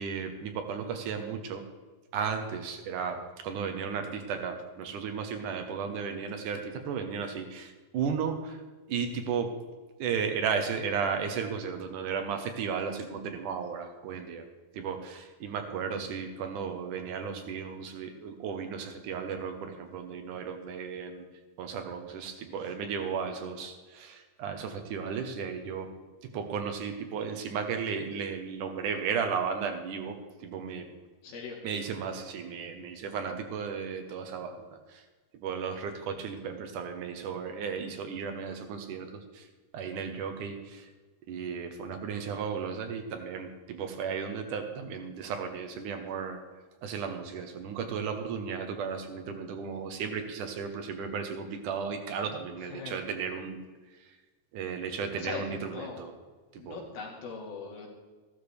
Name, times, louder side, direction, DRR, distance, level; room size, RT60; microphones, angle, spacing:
voice 1, 0.0-1.6 2.1-8.6 8.9-9.6 10.0-14.5 14.7-21.3 21.6-25.9 26.2-30.9 31.6-35.0 35.3-39.5 39.7-40.9 41.3-46.4 46.8-53.7 54.5-56.1 56.5-56.9, right 6 dB, 70° right, 5 dB, 2.2 m, -34 dB
voice 2, 31.2-31.6 52.6-53.0 55.2-56.0 56.6-57.9, left 5 dB, 75° left, -1 dB, 3.9 m, -40 dB
14.5 x 13.0 x 3.4 m, 1.3 s
omnidirectional pair, 4.2 m